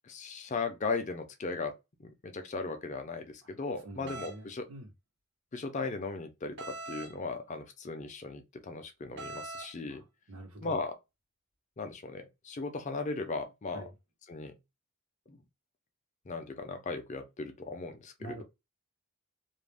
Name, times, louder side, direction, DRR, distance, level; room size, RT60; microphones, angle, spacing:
voice 1, 0.0-4.6 5.5-10.0 10.6-10.9 11.8-13.8 14.3-14.5 15.3-15.4 16.3-18.1, left 3 dB, 35° left, 0.4 m, -37 dB
voice 2, 3.8-4.9 9.9-10.8 13.7-13.9 18.2-18.4, right 1 dB, 80° right, 1.1 m, -46 dB
sound 1, 4.1-4.4 6.6-7.1 9.2-9.7, right 3 dB, 55° right, 0.7 m, -41 dB
2.4 x 2.0 x 3.3 m
head